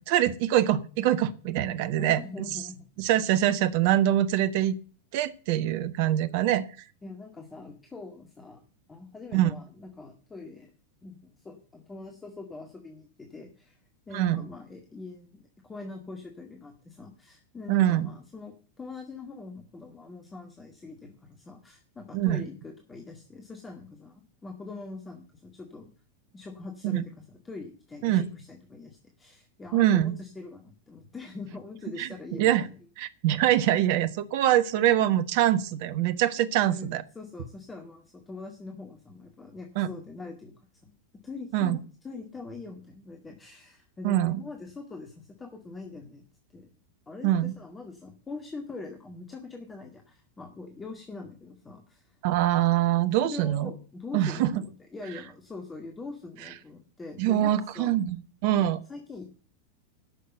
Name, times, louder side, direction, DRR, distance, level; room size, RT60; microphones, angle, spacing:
voice 1, 0.0-2.2 3.0-4.8 5.1-6.6 9.3-9.5 14.1-14.4 17.7-18.1 22.1-22.4 26.9-27.0 28.0-28.3 29.7-30.1 32.0-32.1 32.4-32.7 33.0-37.0 39.8-39.9 41.5-41.8 44.0-44.4 47.2-47.5 52.2-53.7 54.1-54.6 57.2-58.8, right 12 dB, 50° right, 12 dB, 1.0 m, -24 dB
voice 2, 2.0-2.9 7.0-8.6 8.9-10.7 11.0-13.8 14.1-25.9 26.3-32.8 36.7-40.5 40.8-40.9 41.2-46.2 46.5-46.7 47.1-52.2 53.1-58.0 58.6-59.2, left 3 dB, 15° left, 4 dB, 1.9 m, -43 dB
11.5 x 6.6 x 8.0 m, 0.40 s
figure-of-eight pair, 90°, 0 cm